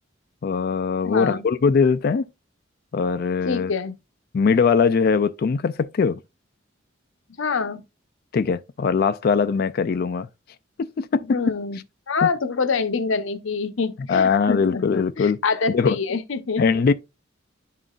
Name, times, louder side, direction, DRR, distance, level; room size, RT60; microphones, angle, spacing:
voice 1, 0.4-2.3 2.9-3.7 4.3-6.2 8.3-10.3 10.8-11.2 12.2-12.3 14.1-15.4 15.7-16.0 16.6-16.9, left 5 dB, 50° left, 0.3 m, -21 dB
voice 2, 1.0-1.4 3.5-3.9 7.4-7.8 11.3-11.8 12.1-16.6, left 5 dB, 75° left, 0.8 m, -26 dB
11.0 x 3.8 x 2.3 m
head